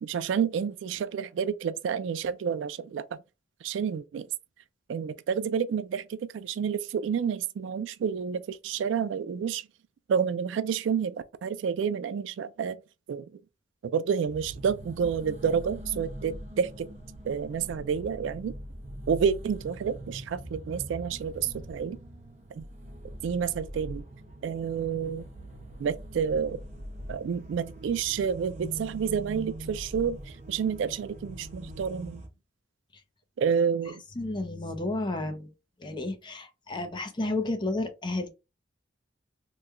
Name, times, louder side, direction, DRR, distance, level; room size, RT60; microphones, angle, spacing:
voice 1, 0.0-3.1 3.6-4.3 4.9-9.7 10.1-12.8 13.1-13.2 13.8-16.9 17.2-18.5 19.1-22.0 22.6-22.7 23.2-24.0 24.4-25.3 25.8-26.6 27.1-32.2 33.4-34.0, right 7 dB, 75° right, 0.3 m, -29 dB
sound 1, 14.3-32.3, equal, 40° right, 0.8 m, -43 dB
voice 2, 33.9-35.5 35.8-38.3, left 2 dB, 25° left, 0.5 m, -32 dB
3.0 x 2.2 x 3.5 m
head